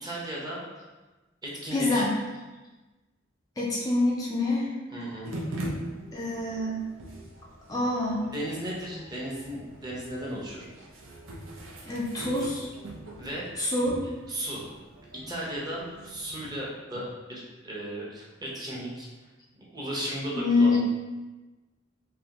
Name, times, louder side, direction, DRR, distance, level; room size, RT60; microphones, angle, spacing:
voice 1, 0.0-0.6 1.4-2.0 4.9-5.3 7.8-7.9 8.2-10.7 13.2-13.5 14.3-14.6 15.3-19.1 19.7-20.8, right 1 dB, 20° right, -4 dB, 0.7 m, -35 dB
voice 2, 1.7-2.1 3.6-4.7 6.1-6.8 7.7-8.2 11.9-12.7 13.6-14.0 20.4-20.8, left 2 dB, 20° left, -4 dB, 0.3 m, -26 dB
sound 1, 5.2-16.6, right 1 dB, 85° right, 0.6 m, -42 dB
3.4 x 2.5 x 2.8 m, 1.2 s
head